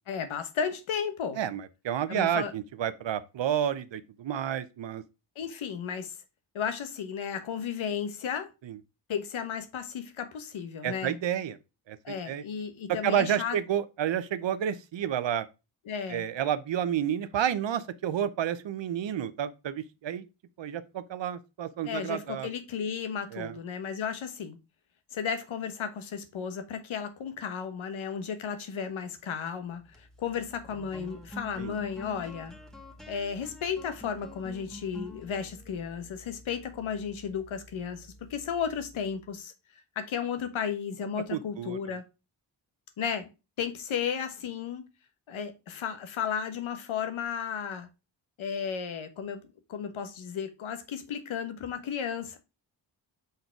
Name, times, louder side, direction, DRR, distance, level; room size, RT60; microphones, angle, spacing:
voice 1, 0.1-1.4 2.1-2.5 5.4-6.2 6.5-8.5 9.1-11.1 12.0-13.6 15.9-16.2 21.8-24.6 25.1-32.5 33.1-39.5 40.0-42.0 43.0-43.3 43.6-44.9 45.3-47.9 48.4-49.4 49.7-52.4, left 7 dB, 80° left, 1.1 m, -34 dB
voice 2, 1.4-5.0 8.6-8.8 10.8-11.6 11.9-12.4 12.9-15.5 16.1-20.3 20.6-22.5 23.3-23.6 31.6-31.7 41.3-41.8, right 9 dB, 65° right, 0.8 m, -30 dB
sound 1, 29.7-39.3, left 1 dB, ahead, 1.4 m, -48 dB
5.4 x 4.1 x 4.5 m
supercardioid pair, 45°, 48 cm